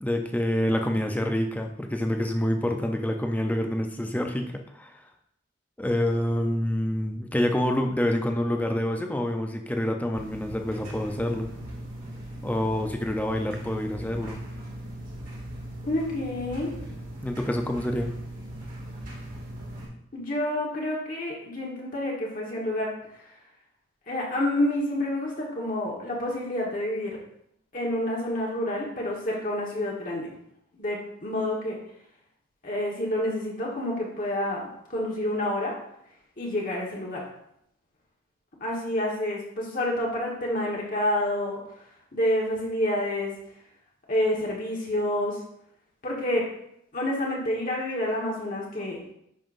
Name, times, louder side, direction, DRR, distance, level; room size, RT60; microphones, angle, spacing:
voice 1, 0.0-5.0 5.8-11.5 12.4-14.4 17.2-18.1, left 1 dB, 5° left, 3 dB, 0.6 m, -27 dB
sound 1, 10.1-19.9, right 1 dB, 40° right, 2.3 m, -39 dB
voice 2, 15.8-16.7 20.1-22.9 23.2-23.3 24.1-27.2 27.7-30.3 30.8-31.8 32.6-34.6 34.9-35.8 36.4-37.2 38.6-41.6 42.1-43.3 44.1-45.4 46.0-46.5 46.9-49.1, left 1 dB, 40° left, -3 dB, 1.4 m, -28 dB
10.5 x 5.7 x 2.6 m, 0.75 s
head